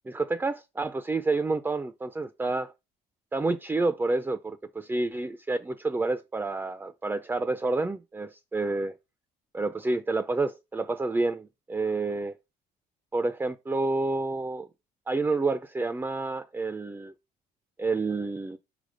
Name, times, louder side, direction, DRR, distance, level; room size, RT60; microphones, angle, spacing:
voice 1, 0.1-2.7 3.3-8.9 9.5-12.3 13.1-14.7 15.1-17.1 17.8-18.6, right 3 dB, 10° right, 0.5 m, -29 dB
5.0 x 4.9 x 5.1 m
cardioid pair, 110°, 17 cm